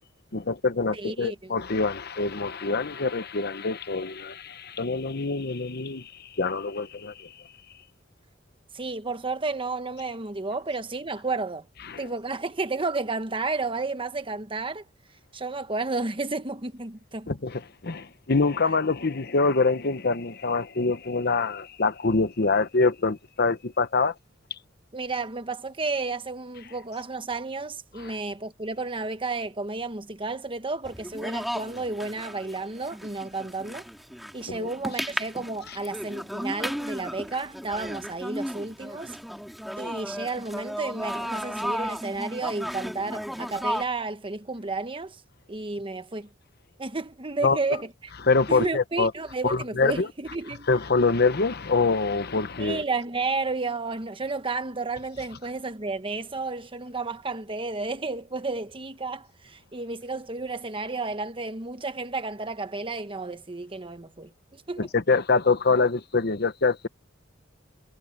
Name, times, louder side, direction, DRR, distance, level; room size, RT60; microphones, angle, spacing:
voice 1, 0.3-7.3 11.8-12.1 17.3-24.1 28.0-28.1 34.5-34.7 47.4-47.6 48.2-49.1 49.4-50.1 50.7-52.8 64.8-66.9, left 4 dB, 55° left, 1.0 m, -25 dB
voice 2, 0.9-1.5 8.7-11.6 12.0-14.8 15.3-17.3 24.9-33.9 34.3-39.2 39.8-45.2 45.5-46.3 46.8-47.9 48.5-50.7 52.6-64.3 64.7-64.9, right 3 dB, 25° right, 1.2 m, -32 dB
sound 1, 30.8-43.8, equal, ahead, 3.0 m, -34 dB
head